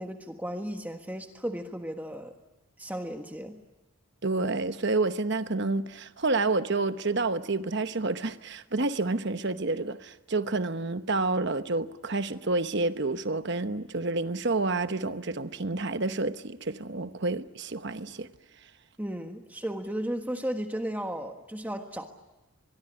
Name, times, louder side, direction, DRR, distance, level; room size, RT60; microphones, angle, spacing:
voice 1, 0.0-2.3 2.8-3.6 19.0-22.0, equal, 10° right, 1.4 m, -34 dB
voice 2, 4.2-18.3, right 3 dB, 50° right, 1.0 m, -29 dB
24.0 x 22.5 x 10.0 m
head